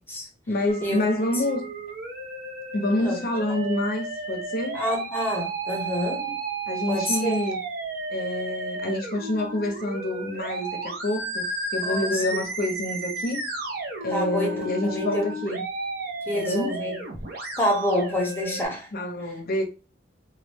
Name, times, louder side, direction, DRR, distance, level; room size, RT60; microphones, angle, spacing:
voice 1, 0.5-1.7 2.7-4.8 6.2-6.3 6.7-7.6 8.1-13.4 14.0-15.6 16.3-16.8 18.9-19.6, left 1 dB, 50° left, 0.6 m, -27 dB
Musical instrument, 0.7-18.7, right 2 dB, 50° right, 0.7 m, -33 dB
voice 2, 4.7-6.3 6.9-7.4 11.8-12.1 14.1-15.6 16.3-17.0 17.6-18.9, left 1 dB, 10° left, 0.8 m, -27 dB
2.2 x 2.1 x 3.3 m
head